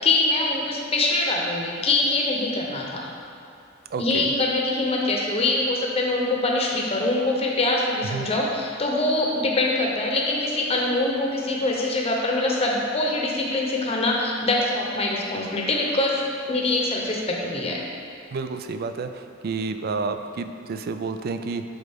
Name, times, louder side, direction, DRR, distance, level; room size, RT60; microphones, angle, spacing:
voice 1, 0.0-3.1 4.0-16.2 16.5-17.8, left 2 dB, 30° left, -1 dB, 0.8 m, -24 dB
voice 2, 3.9-4.3 8.1-8.3 18.3-21.6, right 4 dB, 50° right, 8 dB, 0.3 m, -30 dB
7.7 x 5.0 x 3.6 m, 2.4 s
head